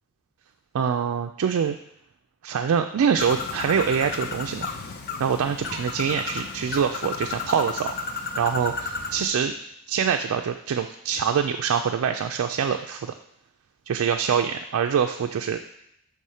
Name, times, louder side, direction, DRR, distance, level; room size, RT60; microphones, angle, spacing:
voice 1, 0.7-1.8 2.4-4.7 5.2-7.9 8.4-9.5 9.9-13.1 13.9-15.6, right 7 dB, 70° right, 6 dB, 0.3 m, -24 dB
Bird, 3.2-9.3, left 4 dB, 45° left, 0.5 m, -33 dB
6.3 x 3.5 x 5.5 m, 0.77 s
head